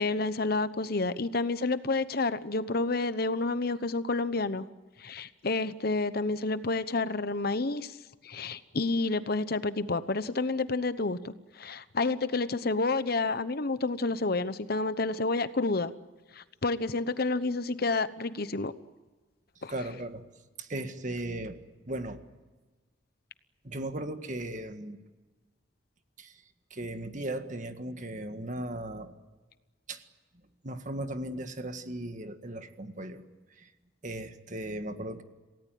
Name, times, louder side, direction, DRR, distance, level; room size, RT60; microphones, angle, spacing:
voice 1, 0.0-4.7 5.0-8.0 8.2-15.9 16.3-18.7 19.6-19.7, left 3 dB, 55° left, 13 dB, 1.0 m, -29 dB
voice 2, 19.7-20.2 20.6-22.2 23.6-25.0 26.2-26.4 26.7-29.1 29.9-30.0 30.6-33.2 33.6-33.7 34.0-35.2, right 1 dB, 40° right, 8 dB, 1.8 m, -37 dB
28.0 x 18.0 x 9.3 m, 1.3 s
head